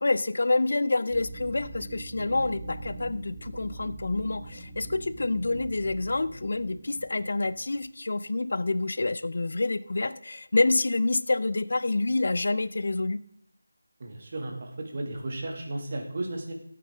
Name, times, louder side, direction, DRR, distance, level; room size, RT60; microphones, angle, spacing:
voice 1, 0.0-13.2, left 2 dB, 60° left, 16 dB, 0.5 m, -27 dB
sound 1, 1.1-7.8, right 2 dB, 25° right, 1.6 m, -42 dB
voice 2, 14.0-16.5, right 2 dB, 40° right, 2 dB, 2.2 m, -34 dB
16.0 x 8.4 x 3.6 m, 0.69 s
figure-of-eight pair, 170°, 0 cm